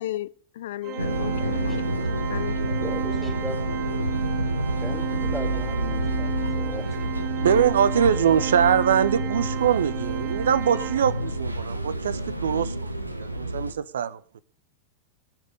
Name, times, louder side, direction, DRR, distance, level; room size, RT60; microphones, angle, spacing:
voice 1, 0.0-2.0 2.3-2.8, left 14 dB, 55° left, 0.6 m, -34 dB
Organ, 0.8-11.6, right 13 dB, 35° right, 0.7 m, -34 dB
sound 1, 1.0-13.7, right 1 dB, 85° right, 1.1 m, -28 dB
voice 2, 2.8-3.6 4.8-7.1, left 1 dB, ahead, 2.3 m, -38 dB
voice 3, 7.4-12.9 13.2-14.4, right 8 dB, 65° right, 0.9 m, -23 dB
22.5 x 7.5 x 5.0 m
figure-of-eight pair, 90°, 0 cm